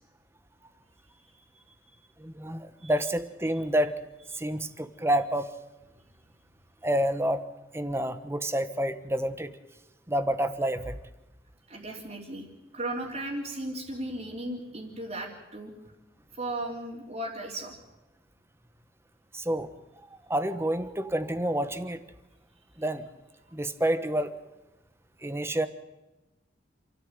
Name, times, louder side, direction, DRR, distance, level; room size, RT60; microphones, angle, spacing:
voice 1, 1.1-1.6 2.8-2.9 11.7-12.5 12.7-15.7 16.3-17.7, right 1 dB, 40° right, -4 dB, 3.3 m, -36 dB
voice 2, 2.2-4.0 4.3-5.5 6.8-7.4 7.7-9.5 10.1-10.9 19.3-19.7 20.3-22.0 22.8-23.1 23.5-24.3 25.2-25.7, right 1 dB, 15° right, 11 dB, 1.2 m, -28 dB
28.0 x 13.5 x 9.0 m, 1.0 s
head